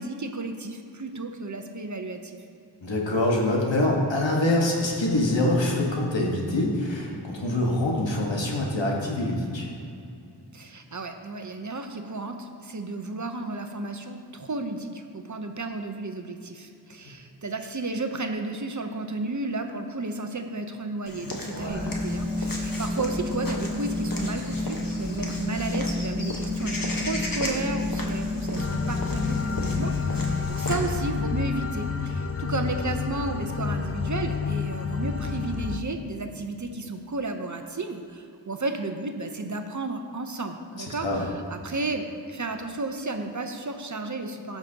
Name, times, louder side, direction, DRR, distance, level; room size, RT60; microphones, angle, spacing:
voice 1, 0.0-2.4 10.5-44.6, right 2 dB, 40° right, 6 dB, 0.8 m, -33 dB
voice 2, 2.8-9.7 21.4-22.0 40.8-41.2, left 1 dB, 90° left, -2 dB, 1.5 m, -25 dB
Walk footsteps / Bird vocalization bird call bird song, 21.1-31.0, left 1 dB, 50° left, 1.2 m, -36 dB
sound 1, 21.7-30.4, left 2 dB, 25° right, 1.6 m, -31 dB
sound 2, 28.6-35.8, left 6 dB, 35° left, 0.5 m, -29 dB
15.0 x 6.0 x 2.9 m, 2.6 s
wide cardioid pair, 50°, 43 cm